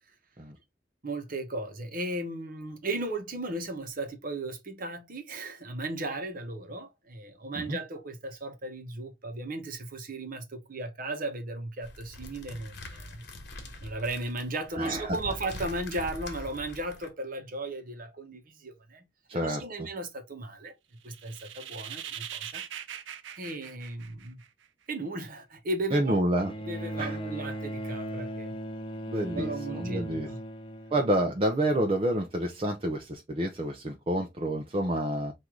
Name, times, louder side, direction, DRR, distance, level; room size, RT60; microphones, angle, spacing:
voice 1, 1.0-13.2 13.8-19.0 19.3-20.7 21.0-22.6 23.3-24.4 24.9-26.2 26.7-28.6 29.3-30.4, right 2 dB, 50° right, 1.0 m, -36 dB
sound 1, 11.8-17.1, left 1 dB, 60° left, 1.3 m, -43 dB
voice 2, 14.7-15.2 19.3-19.6 25.9-26.5 27.0-27.2 29.1-30.3 30.9-35.3, right 1 dB, 30° right, 0.6 m, -28 dB
sound 2, 21.0-24.6, right 9 dB, 90° right, 0.5 m, -41 dB
Bowed string instrument, 26.4-31.9 33.0-33.1, right 1 dB, 30° left, 0.6 m, -38 dB
4.6 x 2.6 x 3.7 m
head